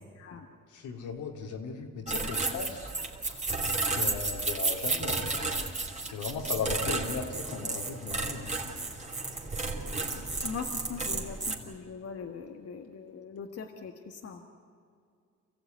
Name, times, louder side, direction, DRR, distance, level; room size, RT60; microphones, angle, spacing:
voice 1, 0.2-0.5 10.4-14.4, left 5 dB, 50° left, 3 dB, 1.7 m, -41 dB
voice 2, 0.7-2.9 3.9-5.6 6.0-8.5, left 5 dB, 80° left, 2 dB, 3.2 m, -37 dB
sound 1, 2.1-11.6, right 3 dB, 25° right, 3.4 m, -32 dB
28.0 x 15.0 x 9.4 m, 2.3 s
cardioid pair, 90°, 30 cm